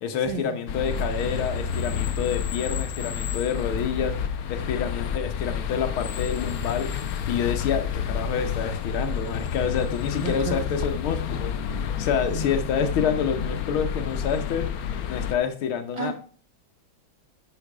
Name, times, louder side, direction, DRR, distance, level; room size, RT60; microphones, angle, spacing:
voice 1, 0.0-4.2 4.5-6.9 7.3-14.7 15.1-16.1, left 7 dB, 85° left, 8 dB, 1.9 m, -28 dB
sound 1, 0.7-15.3, left 7 dB, 60° left, 1.0 m, -29 dB
voice 2, 10.2-10.8 12.3-12.5 15.9-16.1, right 3 dB, 30° right, 2 dB, 2.0 m, -32 dB
10.0 x 5.8 x 4.8 m, 0.41 s
omnidirectional pair, 2.2 m